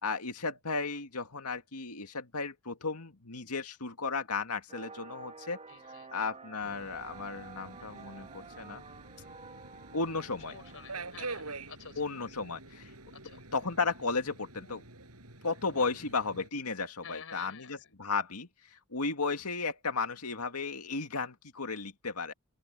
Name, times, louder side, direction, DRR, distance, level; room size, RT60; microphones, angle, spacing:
voice 1, 0.0-5.6 6.1-8.8 9.9-10.6 12.0-12.9 13.5-14.8 15.4-22.3, left 4 dB, 85° left, 2.1 m, -34 dB
sound 1, 4.7-11.4, right 4 dB, 30° right, 2.9 m, -50 dB
voice 2, 5.7-6.3 10.5-12.0 13.1-13.4 15.7-16.1 17.0-17.9, left 6 dB, 65° left, 4.9 m, -50 dB
Subway metro underground, 6.6-16.5, right 3 dB, 80° right, 6.7 m, -47 dB
open air
head